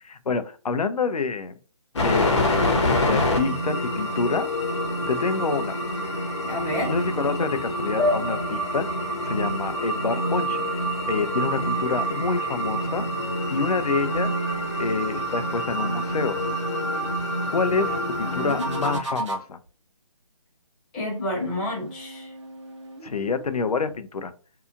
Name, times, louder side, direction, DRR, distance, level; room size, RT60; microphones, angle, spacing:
voice 1, 0.1-1.6 1.9-4.5 5.1-5.8 6.9-8.9 9.2-13.1 13.5-14.3 14.8-16.4 17.5-19.6 23.0-24.3, left 4 dB, 90° left, 10 dB, 0.5 m, -27 dB
sound 1, 2.0-19.0, equal, 50° left, 0.8 m, -27 dB
voice 2, 6.4-6.9 17.7-18.7 20.9-22.3, left 1 dB, 15° left, -4 dB, 0.6 m, -30 dB
sound 2, 8.0-10.9, left 2 dB, 30° right, 1.0 m, -31 dB
sound 3, 18.3-19.7 21.1-24.0, right 2 dB, 50° right, 0.8 m, -37 dB
2.7 x 2.3 x 2.4 m, 0.37 s
figure-of-eight pair, 155°, 19 cm